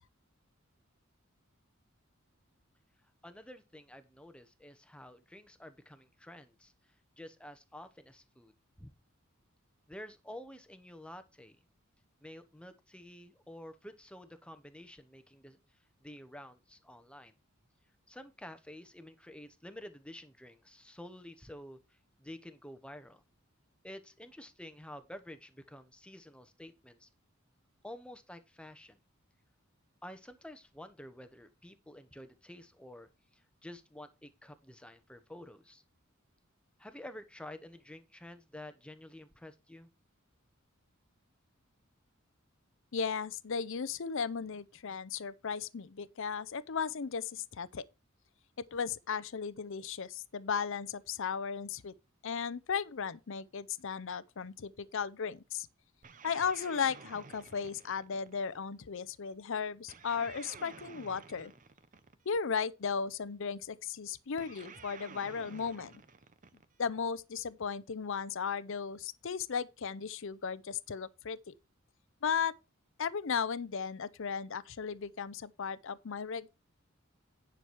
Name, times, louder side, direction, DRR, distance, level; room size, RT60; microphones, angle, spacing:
voice 1, 3.2-8.9 9.9-11.6 12.2-17.4 18.1-23.2 23.8-27.1 27.8-29.0 30.0-35.8 36.8-39.9, left 1 dB, 5° left, 1.0 m, -50 dB
voice 2, 42.9-47.8 48.7-51.9 52.2-55.7 56.2-61.5 62.3-65.9 66.8-71.5 72.2-72.5 73.0-76.5, left 6 dB, 65° left, 0.6 m, -36 dB
sound 1, 56.0-58.6 59.9-62.4 64.4-66.9, right 5 dB, 40° right, 0.8 m, -52 dB
10.0 x 6.1 x 4.8 m
head